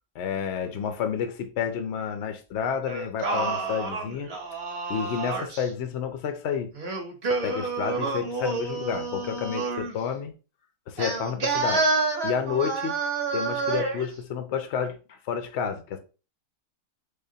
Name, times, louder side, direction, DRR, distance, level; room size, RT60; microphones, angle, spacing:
voice 1, 0.1-4.3 4.9-6.7 7.4-10.3 10.9-11.9 12.2-12.9 13.3-16.0, left 7 dB, 75° left, 0.6 m, -30 dB
Singing, 2.9-5.7 6.7-9.9 11.0-14.1, right 3 dB, 50° right, 0.9 m, -29 dB
3.6 x 3.5 x 2.7 m
omnidirectional pair, 1.8 m